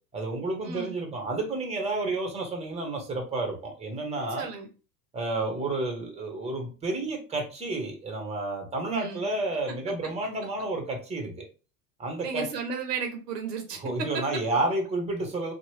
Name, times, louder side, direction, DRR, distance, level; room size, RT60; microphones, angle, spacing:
voice 1, 0.1-4.5 5.1-11.4 12.0-12.4 13.8-15.5, right 2 dB, 15° right, 2 dB, 1.0 m, -30 dB
voice 2, 0.6-1.0 4.4-4.7 8.9-9.3 12.2-14.2, right 5 dB, 75° right, 5 dB, 0.8 m, -34 dB
2.8 x 2.3 x 3.1 m, 0.34 s
hypercardioid pair, 85°, 48 cm